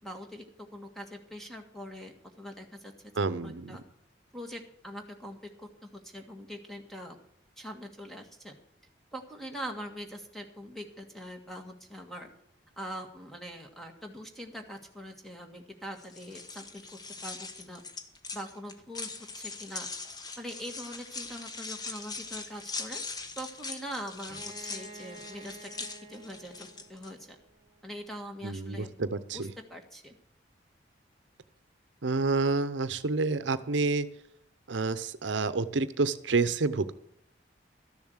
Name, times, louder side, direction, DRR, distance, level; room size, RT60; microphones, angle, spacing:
voice 1, 0.0-0.4 0.7-2.9 3.4-3.8 4.3-7.2 7.6-8.5 9.1-12.3 12.8-17.8 18.3-19.9 20.4-23.0 23.3-25.7 26.1-27.4 27.8-28.9 29.3-30.1, equal, ahead, 3 dB, 1.6 m, -43 dB
voice 2, 3.2-3.8 28.4-29.5 32.0-34.1 34.7-36.9, right 3 dB, 80° right, 14 dB, 0.7 m, -29 dB
sound 1, 16.0-27.1, left 4 dB, 20° left, 0.9 m, -41 dB
Bowed string instrument, 24.3-27.9, right 2 dB, 25° right, 2.6 m, -50 dB
13.0 x 7.1 x 8.0 m, 0.70 s
head